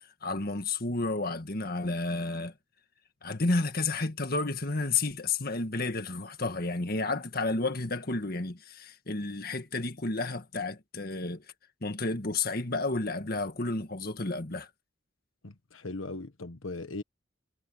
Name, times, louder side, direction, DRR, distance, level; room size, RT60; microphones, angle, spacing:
voice 1, 0.0-2.5 3.2-11.4 11.8-14.7, left 3 dB, 50° left, 1.8 m, -31 dB
voice 2, 15.4-17.0, left 2 dB, 85° left, 1.3 m, -39 dB
head